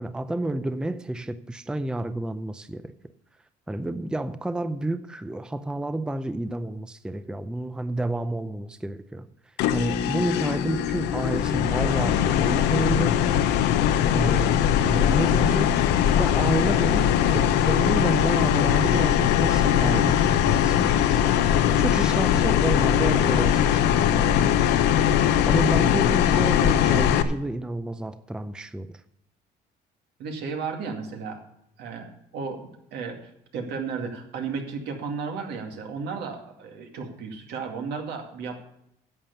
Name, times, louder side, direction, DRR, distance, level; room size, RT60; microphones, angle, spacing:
voice 1, 0.0-2.9 3.7-9.3 9.7-13.2 14.1-15.8 16.2-24.9 25.4-29.0, right 1 dB, 5° right, 0.5 m, -30 dB
sound 1, 9.6-27.2, left 10 dB, 90° left, 0.8 m, -21 dB
voice 2, 30.2-31.4 31.8-38.6, right 5 dB, 80° right, 2.3 m, -34 dB
11.0 x 7.6 x 6.8 m
cardioid pair, 110°, 17 cm